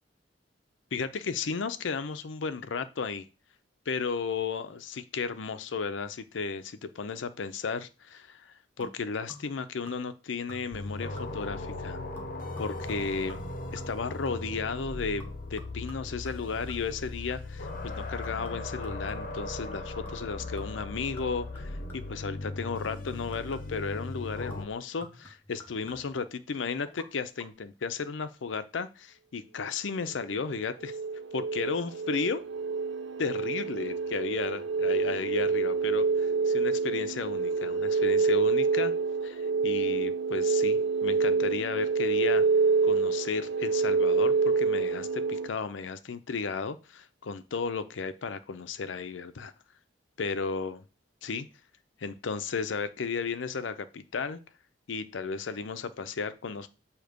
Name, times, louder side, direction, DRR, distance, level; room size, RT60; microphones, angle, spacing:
voice 1, 0.9-3.3 3.9-12.0 12.6-13.4 13.7-31.0 31.3-32.4 33.2-38.9 39.2-42.4 42.8-49.5 50.2-50.8 51.2-51.5 52.0-54.4 54.9-56.7, left 5 dB, 85° left, 11 dB, 0.6 m, -34 dB
sound 1, 8.8-9.6 9.9-10.2 10.5-10.9 11.2-11.6 12.2-14.6 15.2-17.7 18.2-19.5 20.1-20.3 20.6-22.2 22.8-23.9 24.5-26.3 26.9-27.1 27.4-27.5, left 1 dB, 10° left, 1.5 m, -51 dB
sound 2, 10.7-24.7, left 2 dB, 45° left, 0.8 m, -38 dB
sound 3, 30.3-45.5, right 4 dB, 70° right, 0.6 m, -27 dB
7.8 x 2.9 x 5.1 m, 0.33 s
head